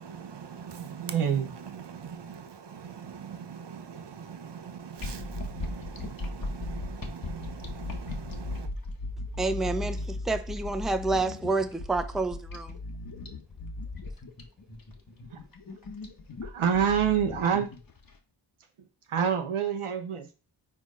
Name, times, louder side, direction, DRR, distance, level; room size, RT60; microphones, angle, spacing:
voice 1, 0.0-1.2 1.7-8.7, right 7 dB, 55° right, 1.0 m, -42 dB
voice 2, 0.7-1.5 16.4-17.7 18.8-20.4, right 8 dB, 85° right, 1.2 m, -27 dB
sound 1, 5.0-18.1, left 2 dB, 45° left, 1.4 m, -37 dB
voice 3, 9.4-12.8, right 3 dB, ahead, 0.5 m, -29 dB
4.9 x 4.4 x 4.8 m
cardioid pair, 50°, 49 cm